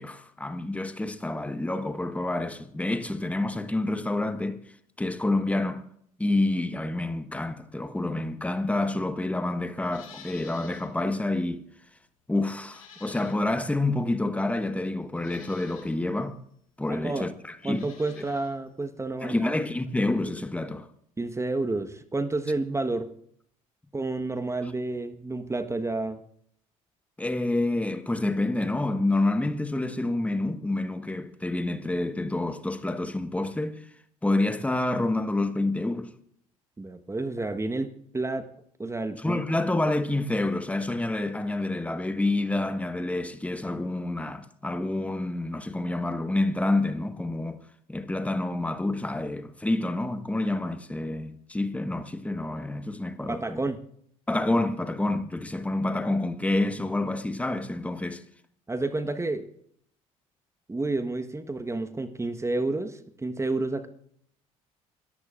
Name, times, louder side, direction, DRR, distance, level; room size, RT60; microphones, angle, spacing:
voice 1, 0.0-4.6 5.0-5.9 6.2-11.6 12.3-16.4 16.8-17.9 19.2-20.9 27.2-33.8 34.2-36.1 39.2-47.6 47.9-53.6 54.3-58.2, left 2 dB, 10° left, 1.5 m, -28 dB
Livestock farm animals working animals, 9.8-10.9 11.3-11.4 12.6-13.7 14.5-14.6 15.1-15.9 17.6-18.5 18.8-18.9, left 6 dB, 85° left, 3.6 m, -50 dB
voice 2, 16.9-17.3 17.6-19.5 21.2-23.1 23.9-26.2 36.8-38.5 38.8-39.4 53.3-53.8 58.7-59.5 60.7-63.9, right 2 dB, 15° right, 1.4 m, -30 dB
28.0 x 14.5 x 2.5 m
figure-of-eight pair, 55°, 18 cm